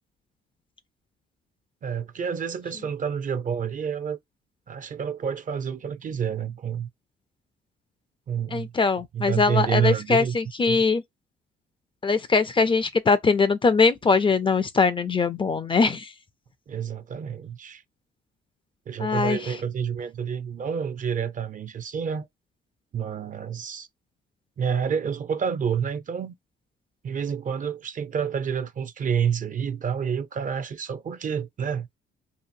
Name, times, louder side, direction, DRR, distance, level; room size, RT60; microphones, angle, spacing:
voice 1, 1.8-4.2 4.7-6.9 8.3-8.7 9.1-10.4 10.7-10.8 16.7-17.8 18.9-22.3 22.9-23.9 24.6-26.3 27.0-31.9, right 7 dB, 40° right, 0.5 m, -28 dB
voice 2, 8.5-11.0 12.0-16.1 19.0-19.4, left 4 dB, 25° left, 0.4 m, -22 dB
2.8 x 2.5 x 2.5 m
cardioid pair, 90°, 20 cm